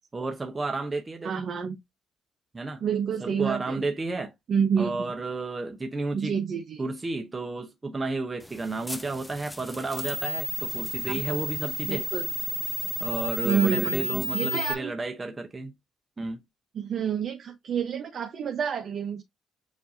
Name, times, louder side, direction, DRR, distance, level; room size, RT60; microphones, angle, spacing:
voice 1, 0.1-1.3 2.5-2.8 3.2-4.3 4.8-6.3 6.8-12.1 13.0-15.7 16.2-16.4, right 3 dB, 25° right, 0.7 m, -32 dB
voice 2, 1.2-1.8 2.8-3.8 4.5-5.1 6.1-6.9 11.1-11.2 11.9-12.3 13.4-14.9 16.7-19.2, right 7 dB, 60° right, 0.7 m, -28 dB
sound 1, 8.4-14.7, left 1 dB, 5° left, 0.4 m, -32 dB
7.2 x 2.7 x 2.6 m
cardioid pair, 90°, 0 cm